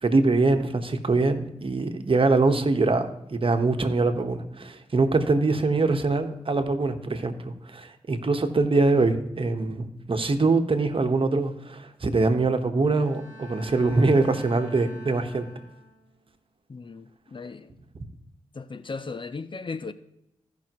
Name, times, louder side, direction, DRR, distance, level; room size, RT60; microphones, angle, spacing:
voice 1, 0.0-15.5, right 3 dB, 45° right, 1.3 m, -23 dB
Bowed string instrument, 13.0-16.2, left 1 dB, 85° left, 2.9 m, -46 dB
voice 2, 16.7-17.7 18.5-19.9, left 4 dB, 40° left, 0.6 m, -36 dB
16.5 x 5.8 x 3.0 m
supercardioid pair, 40°, 12 cm